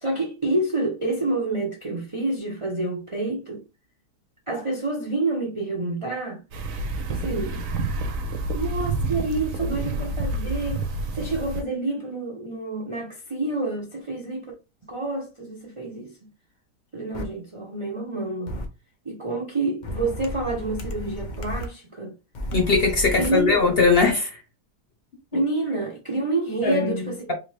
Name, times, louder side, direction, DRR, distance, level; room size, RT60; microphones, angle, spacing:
voice 1, 0.0-3.6 4.5-6.4 7.1-7.6 8.5-10.9 11.1-14.5 14.9-16.3 16.9-18.6 19.0-22.1 23.1-23.7 25.3-27.3, right 2 dB, 40° right, 0.5 m, -28 dB
sound 1, 6.5-11.6, right 2 dB, 65° right, 1.0 m, -28 dB
sound 2, 17.1-17.2 18.5-18.7 19.8-21.7 22.3-24.1, left 1 dB, 70° left, 0.4 m, -33 dB
voice 2, 22.5-24.4 25.3-25.4 26.6-27.3, left 4 dB, 50° left, 0.8 m, -21 dB
3.5 x 2.6 x 3.2 m
omnidirectional pair, 1.7 m